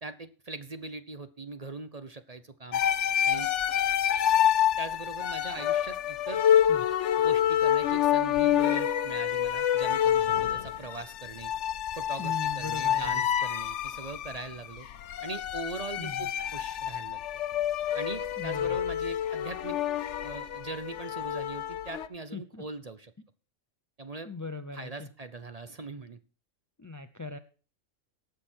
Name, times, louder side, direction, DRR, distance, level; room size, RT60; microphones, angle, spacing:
voice 1, 0.0-2.8 3.2-3.5 4.8-6.4 7.2-11.5 11.9-14.9 15.2-17.2 17.9-19.8 20.2-23.1 24.0-24.3 24.7-26.2, right 3 dB, 35° right, 11 dB, 0.7 m, -41 dB
sound 1, 2.7-22.1, left 10 dB, 65° left, 1.0 m, -27 dB
voice 2, 12.2-13.3 16.0-16.3 18.4-18.8 22.3-22.6 24.2-25.1 26.8-27.4, left 3 dB, 25° left, 9 dB, 0.3 m, -39 dB
17.5 x 6.7 x 4.5 m, 0.37 s
omnidirectional pair, 1.4 m